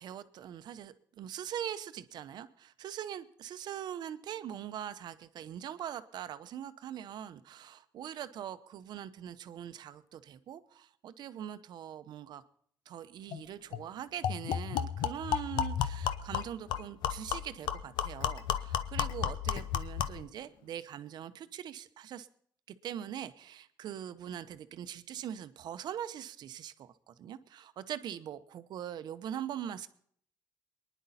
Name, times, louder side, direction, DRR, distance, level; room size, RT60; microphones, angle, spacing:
voice 1, 0.0-12.4 12.9-22.3 22.8-29.9, right 10 dB, 70° right, 12 dB, 0.8 m, -42 dB
sound 1, 13.3-13.4 13.7-13.8 14.2-20.3, left 9 dB, 80° left, 0.8 m, -33 dB
23.0 x 10.0 x 4.1 m, 0.63 s
supercardioid pair, 75°, 8 cm